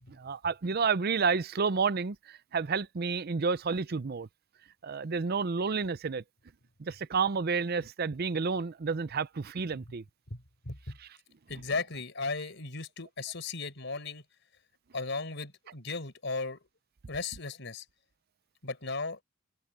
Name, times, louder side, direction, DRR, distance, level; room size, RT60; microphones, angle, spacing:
voice 1, 0.1-4.3 4.8-6.2 6.8-10.0 11.0-11.1, right 5 dB, 50° right, 0.6 m, -30 dB
voice 2, 10.3-11.0 11.5-14.2 14.9-16.6 17.1-17.8 18.6-19.2, left 3 dB, 65° left, 4.9 m, -36 dB
open air
head